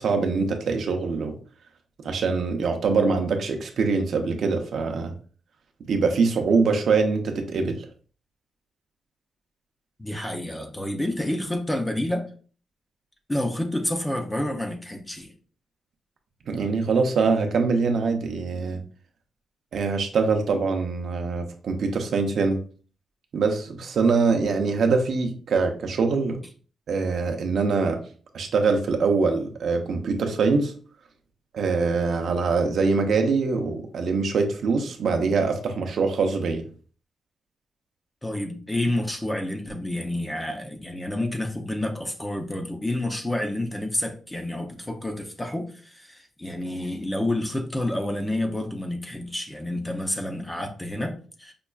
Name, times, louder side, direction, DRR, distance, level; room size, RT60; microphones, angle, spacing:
voice 1, 0.0-1.4 2.0-5.1 5.9-7.9 16.5-18.8 19.7-22.6 23.3-26.4 26.9-28.0 28.3-30.7 31.5-36.6, right 4 dB, 55° right, 0.5 m, -23 dB
voice 2, 10.0-12.3 13.3-15.3 38.2-51.5, left 1 dB, 10° left, 0.4 m, -29 dB
5.1 x 2.3 x 2.3 m
wide cardioid pair, 170°, 0 cm